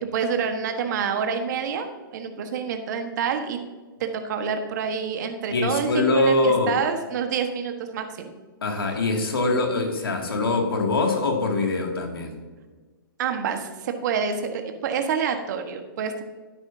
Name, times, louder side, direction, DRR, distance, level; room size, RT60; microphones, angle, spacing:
voice 1, 0.1-3.6 4.0-8.3 13.2-16.2, right 6 dB, 50° right, 6 dB, 1.4 m, -27 dB
voice 2, 5.5-6.8 8.6-12.4, left 2 dB, 80° left, 2 dB, 2.4 m, -23 dB
12.0 x 9.8 x 2.8 m, 1.3 s
hypercardioid pair, 130°, 12 cm